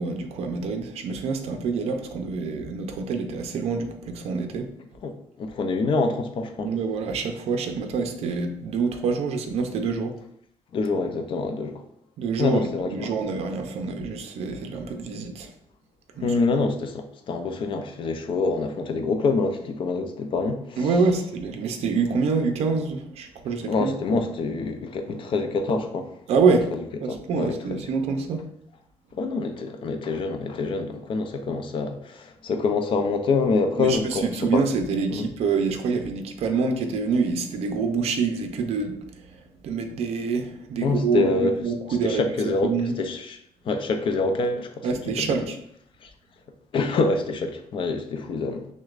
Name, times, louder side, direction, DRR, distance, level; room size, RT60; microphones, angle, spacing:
voice 1, 0.0-4.7 6.6-10.2 12.2-15.5 16.1-16.4 20.8-23.9 26.3-26.7 27.0-28.4 33.8-42.9 44.8-45.6, right 4 dB, 65° right, 5 dB, 0.5 m, -26 dB
voice 2, 5.0-6.8 10.7-11.8 12.4-13.1 16.2-20.9 23.7-26.2 26.7-26.8 27.1-27.8 29.1-34.6 35.1-35.3 40.8-41.5 42.0-43.4 43.6-45.4 46.0-46.1 46.7-48.7, left 4 dB, 50° left, 5 dB, 0.5 m, -26 dB
6.1 x 2.2 x 2.4 m, 0.73 s
cardioid pair, 145°, 11 cm